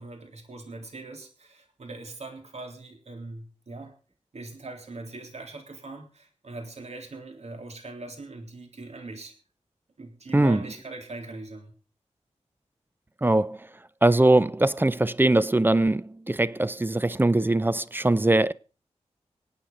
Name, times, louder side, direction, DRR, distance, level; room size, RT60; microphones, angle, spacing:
voice 1, 0.0-3.9 4.3-9.3 10.0-11.7, right 2 dB, 65° right, 3.7 m, -41 dB
voice 2, 10.3-10.7 13.2-13.6 14.0-18.5, right 2 dB, 15° right, 0.6 m, -21 dB
25.0 x 9.0 x 3.9 m
cardioid pair, 65°, 12 cm